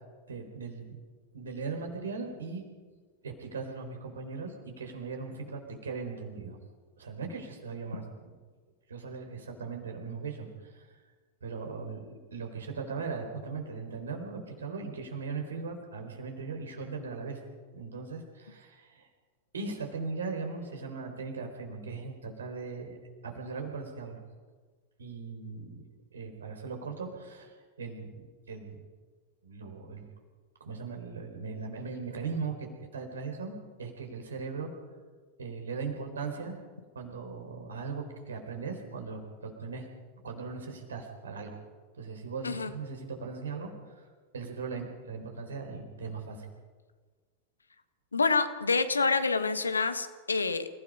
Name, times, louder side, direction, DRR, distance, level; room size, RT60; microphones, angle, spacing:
voice 1, 0.3-1.0 1.3-2.6 3.2-6.6 7.0-8.3 8.9-11.0 11.4-17.4 17.7-19.1 19.5-23.0 23.2-24.2 25.0-25.8 26.1-28.8 29.4-30.1 30.6-33.5 33.8-34.7 35.4-36.6 36.9-39.9 40.2-41.6 41.9-44.0 44.3-46.5, right 4 dB, 70° right, 3 dB, 4.1 m, -39 dB
voice 2, 48.1-50.7, left 4 dB, 75° left, 11 dB, 1.3 m, -27 dB
28.5 x 16.5 x 5.5 m, 1.4 s
figure-of-eight pair, 90°, 0 cm